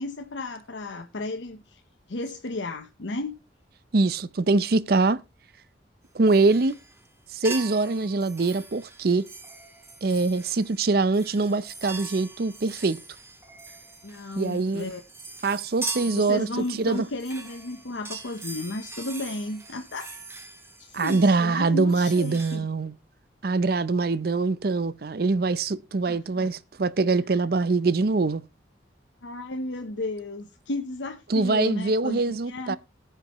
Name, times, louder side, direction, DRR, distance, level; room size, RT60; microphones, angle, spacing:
voice 1, 0.0-1.8 2.1-3.3 14.0-15.0 16.0-20.2 20.8-22.6 26.1-26.5 27.3-27.4 29.2-32.8, left 2 dB, 85° left, 0.9 m, -34 dB
voice 2, 3.9-5.2 6.1-6.8 7.3-9.2 10.0-13.0 14.4-14.9 15.4-16.5 16.8-17.0 20.9-22.9 23.4-28.4 31.3-32.8, right 3 dB, 55° right, 0.5 m, -23 dB
sound 1, 6.3-7.1 7.4-22.6, right 3 dB, 15° right, 1.7 m, -41 dB
19.0 x 6.8 x 3.0 m
head